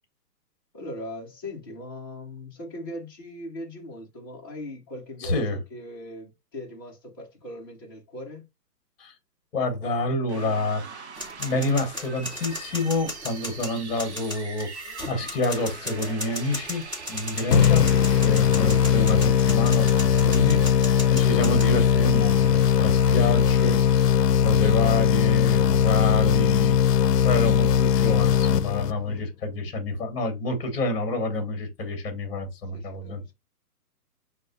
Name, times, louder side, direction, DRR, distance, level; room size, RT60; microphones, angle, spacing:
voice 1, 0.7-8.5 29.1-29.2 32.7-33.3, left 1 dB, 15° left, 0.6 m, -40 dB
voice 2, 5.2-5.6 9.0-9.1 9.5-11.1 11.4-16.8 17.1-17.9 18.2-26.8 27.2-33.3, left 2 dB, 35° left, 1.2 m, -28 dB
sound 1, 10.2-24.4, right 5 dB, 45° right, 0.5 m, -42 dB
sound 2, 11.1-21.7, left 1 dB, 10° right, 1.1 m, -37 dB
sound 3, 17.5-29.2, left 8 dB, 75° left, 0.6 m, -20 dB
6.3 x 2.3 x 2.6 m
hypercardioid pair, 165°, 48 cm